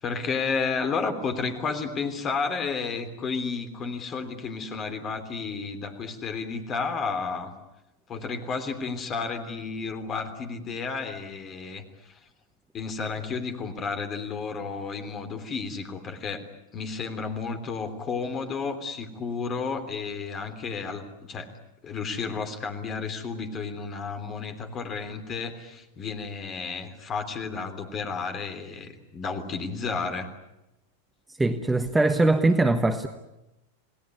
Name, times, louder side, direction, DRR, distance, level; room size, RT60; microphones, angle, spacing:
voice 1, 0.0-7.5 8.1-11.8 12.7-16.4 16.7-21.5 21.8-30.3, left 5 dB, 25° left, 7 dB, 3.3 m, -32 dB
voice 2, 31.4-33.1, right 2 dB, 10° right, 8 dB, 1.3 m, -21 dB
28.5 x 18.5 x 9.6 m, 0.96 s
figure-of-eight pair, 90°, 0 cm